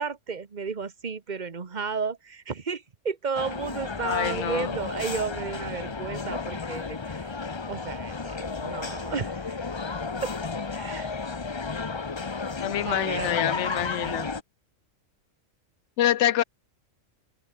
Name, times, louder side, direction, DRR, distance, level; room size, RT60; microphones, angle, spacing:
voice 1, 0.0-7.3 7.7-9.5 10.2-10.3 10.7-11.1 12.8-13.5, right 5 dB, 35° right, 1.3 m, -33 dB
sound 1, 3.3-14.4, left 4 dB, 25° left, 0.7 m, -33 dB
voice 2, 4.0-4.7 12.6-14.3 16.0-16.4, left 12 dB, 70° left, 0.9 m, -26 dB
open air
omnidirectional pair, 1.3 m